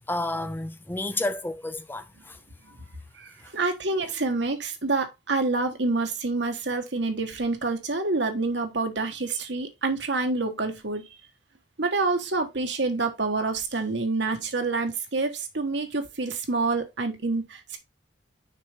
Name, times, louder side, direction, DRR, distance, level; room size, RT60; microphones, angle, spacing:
voice 1, 0.1-2.4 3.4-3.5 4.0-4.1, left 2 dB, 10° left, 0.4 m, -31 dB
voice 2, 3.2-11.1 11.8-17.8, right 3 dB, 70° right, 1.4 m, -27 dB
6.6 x 5.4 x 3.5 m
head